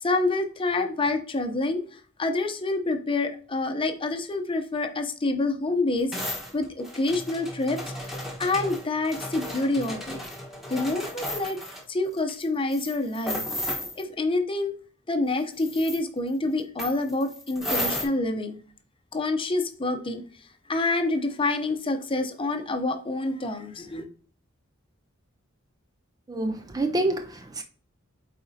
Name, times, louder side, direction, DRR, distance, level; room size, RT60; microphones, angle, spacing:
voice 1, 0.0-6.1 6.5-10.2 10.7-11.6 11.9-13.4 14.0-14.7 15.1-18.6 19.1-20.2 20.7-24.1, left 2 dB, 25° left, 0.7 m, -27 dB
sound 1, 6.1-11.8 12.3-12.4 12.7-14.0 15.5-16.0 16.8-18.0, left 1 dB, ahead, 1.3 m, -34 dB
voice 2, 26.3-27.6, right 2 dB, 20° right, 0.4 m, -27 dB
8.7 x 4.2 x 2.8 m
head